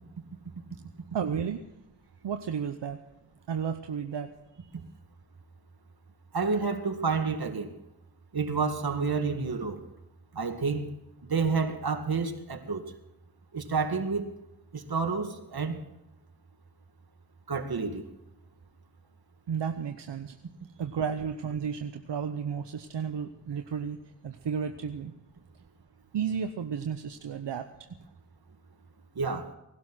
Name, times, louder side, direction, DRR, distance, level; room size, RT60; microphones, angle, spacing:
voice 1, 1.1-1.6 2.2-3.0 3.5-4.3 4.6-4.7 19.5-20.4 20.8-24.0 24.2-25.1 26.1-27.9, right 7 dB, 80° right, 7 dB, 0.9 m, -33 dB
voice 2, 6.3-7.7 8.3-9.8 10.3-10.9 11.2-12.9 13.5-14.3 14.7-15.8 17.5-18.0 29.2-29.5, right 4 dB, 60° right, 6 dB, 2.1 m, -29 dB
19.5 x 12.0 x 6.2 m, 0.95 s
cardioid pair, 50°, 42 cm